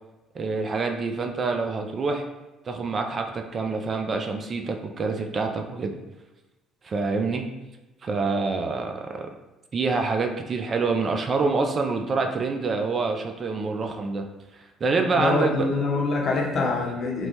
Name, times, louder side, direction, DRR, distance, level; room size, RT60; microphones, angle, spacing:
voice 1, 0.3-2.3 2.6-5.9 6.8-7.5 8.0-9.3 9.7-14.3 14.8-15.7, right 4 dB, 45° right, 4 dB, 0.3 m, -26 dB
voice 2, 15.2-17.3, left 3 dB, 55° left, -1 dB, 0.6 m, -25 dB
3.0 x 2.1 x 2.8 m, 1.1 s
hypercardioid pair, 55°, 0 cm